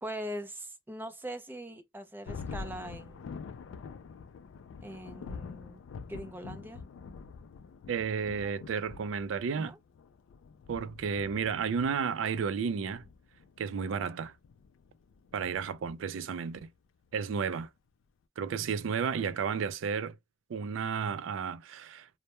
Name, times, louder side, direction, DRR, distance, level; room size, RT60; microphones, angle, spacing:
voice 1, 0.0-3.3 4.8-5.8 6.1-6.8 8.4-8.5 9.6-9.8, right 1 dB, 10° right, 0.5 m, -41 dB
Thunder, 2.2-16.2, left 5 dB, 70° left, 0.3 m, -46 dB
voice 2, 7.9-9.7 10.7-13.1 13.6-14.3 15.3-16.7 17.1-17.7 18.4-20.2 20.5-22.1, right 6 dB, 70° right, 0.4 m, -32 dB
2.2 x 2.0 x 2.8 m
head